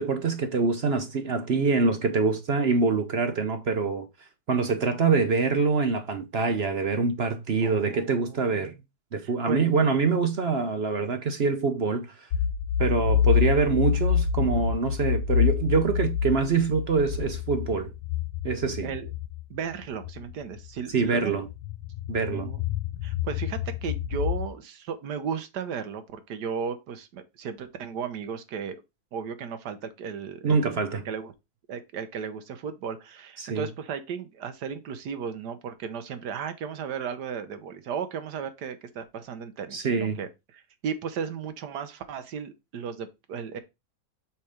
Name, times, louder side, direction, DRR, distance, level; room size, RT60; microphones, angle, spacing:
voice 1, 0.0-4.1 4.5-8.7 9.1-12.3 12.8-17.9 18.4-18.9 20.9-21.5 22.1-22.5 30.4-31.0 33.4-33.7 39.7-40.2, right 4 dB, 50° right, 0.8 m, -25 dB
voice 2, 7.6-8.8 9.2-9.6 18.8-19.1 19.5-21.4 22.2-22.6 23.0-28.8 29.1-31.3 31.7-43.6, right 6 dB, 85° right, 1.5 m, -35 dB
sound 1, 12.3-19.4 20.0-20.3 21.4-24.5, left 8 dB, 90° left, 1.3 m, -27 dB
5.9 x 4.6 x 5.0 m
omnidirectional pair, 1.7 m